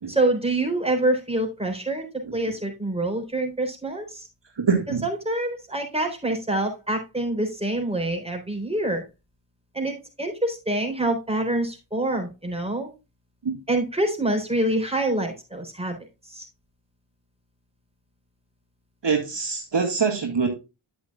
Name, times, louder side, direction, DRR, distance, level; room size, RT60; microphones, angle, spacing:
voice 1, 0.1-2.0 2.3-4.3 5.0-9.0 9.7-12.9 13.7-16.0 16.3-16.5, right 1 dB, 10° right, 3 dB, 3.8 m, -26 dB
voice 2, 4.6-5.0 13.4-13.6 19.0-20.5, right 5 dB, 60° right, 2 dB, 1.9 m, -24 dB
9.9 x 8.1 x 2.3 m, 0.26 s
cardioid pair, 40°, 48 cm